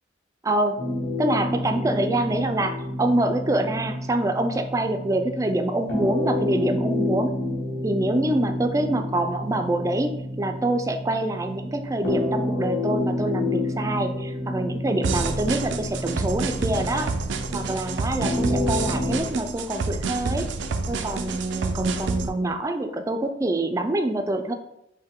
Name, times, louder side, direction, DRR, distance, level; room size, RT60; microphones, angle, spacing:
voice 1, 0.4-0.9 1.2-7.3 7.8-17.1 17.5-20.5 20.9-24.5, right 1 dB, 20° right, 6 dB, 0.3 m, -26 dB
sound 1, 0.8-19.2, left 1 dB, 70° left, 1.5 m, -29 dB
sound 2, 15.0-22.3, right 4 dB, 85° right, 0.4 m, -28 dB
5.4 x 2.1 x 3.6 m, 0.81 s
head